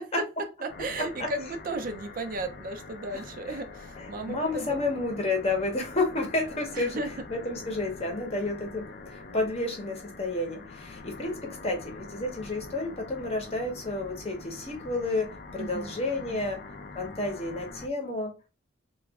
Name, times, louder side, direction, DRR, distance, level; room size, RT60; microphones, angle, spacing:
voice 1, 0.6-4.8 6.7-7.1 15.6-16.5, right 2 dB, 45° right, 0.4 m, -35 dB
sound 1, 0.7-17.9, left 3 dB, 50° left, 0.4 m, -44 dB
voice 2, 4.3-7.0 7.3-16.6 16.9-18.3, left 2 dB, 30° left, 0.8 m, -31 dB
3.0 x 2.3 x 3.4 m
head